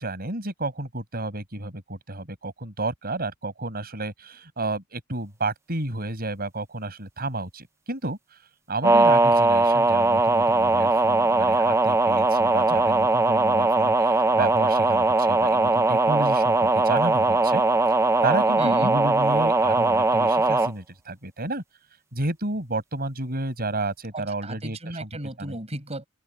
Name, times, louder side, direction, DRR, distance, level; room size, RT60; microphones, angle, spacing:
voice 1, 0.0-8.2 8.7-17.6 18.2-21.6 22.1-25.1 25.4-25.6, right 2 dB, 45° right, 6.0 m, -31 dB
sound 1, 8.8-20.7, right 2 dB, 15° right, 0.5 m, -20 dB
voice 2, 18.6-18.9 24.1-26.1, right 1 dB, 30° right, 6.0 m, -34 dB
head